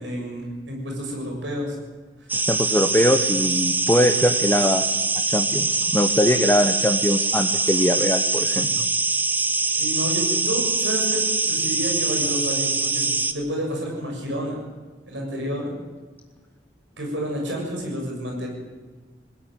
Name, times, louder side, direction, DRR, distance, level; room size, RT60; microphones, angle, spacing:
voice 1, 0.0-1.8 9.7-11.2 11.5-13.1 13.3-14.6 15.1-15.8 17.0-18.5, equal, 80° right, 0 dB, 7.3 m, -29 dB
voice 2, 2.3-4.9 5.3-8.8, equal, 10° left, 5 dB, 1.0 m, -22 dB
sound 1, 2.3-13.3, right 3 dB, 10° right, 1.3 m, -23 dB
21.0 x 17.0 x 9.2 m, 1.4 s
head